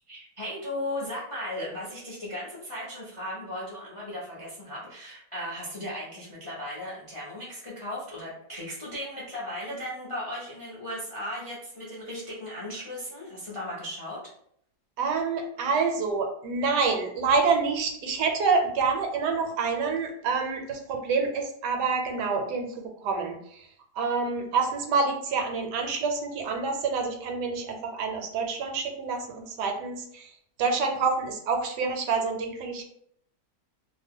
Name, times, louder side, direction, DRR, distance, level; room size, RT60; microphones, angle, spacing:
voice 1, 0.1-14.2, left 1 dB, 40° left, -6 dB, 0.4 m, -36 dB
voice 2, 15.0-23.7 23.9-32.8, right 4 dB, 80° right, 3 dB, 1.2 m, -27 dB
2.8 x 2.1 x 3.5 m, 0.68 s
omnidirectional pair, 1.8 m